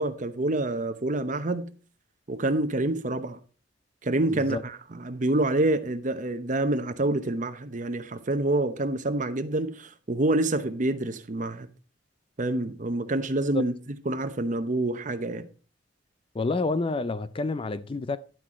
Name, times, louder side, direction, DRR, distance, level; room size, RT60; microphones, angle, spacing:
voice 1, 0.0-1.7 2.3-3.4 4.0-11.7 12.4-13.7 14.1-15.5, right 2 dB, 40° right, 0.8 m, -27 dB
voice 2, 4.3-4.6 13.5-13.6 16.3-18.2, left 3 dB, 25° left, 0.4 m, -28 dB
11.5 x 6.2 x 4.3 m
head